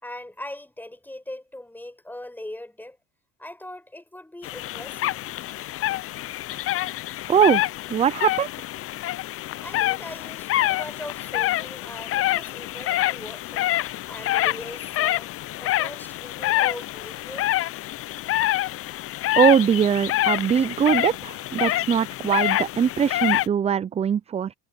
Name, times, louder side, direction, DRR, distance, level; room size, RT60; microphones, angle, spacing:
voice 1, 0.0-3.0 3.4-5.2 5.5-5.6 9.6-17.5, left 1 dB, 5° left, 6.3 m, -40 dB
sound 1, 4.4-23.5, left 15 dB, 40° left, 0.7 m, -26 dB
voice 2, 7.3-8.5 19.4-24.5, right 8 dB, 20° right, 0.5 m, -21 dB
hypercardioid pair, 90°, 33 cm